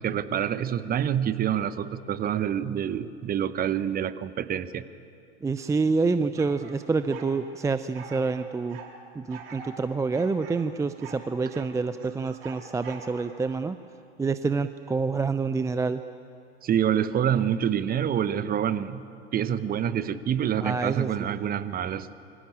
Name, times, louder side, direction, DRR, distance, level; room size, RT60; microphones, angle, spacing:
voice 1, 0.0-4.9 16.6-19.1 19.3-22.1, right 9 dB, 25° right, 14 dB, 1.1 m, -27 dB
voice 2, 5.4-8.8 9.1-13.8 14.2-16.0 20.6-21.4, right 4 dB, 10° right, 12 dB, 0.6 m, -27 dB
sound 1, 6.4-7.3 7.9-8.9 9.3-9.8 10.1-11.7 12.0-13.5, right 5 dB, 60° right, 4.5 m, -45 dB
27.0 x 24.0 x 8.8 m, 2.6 s
figure-of-eight pair, 85°, 34 cm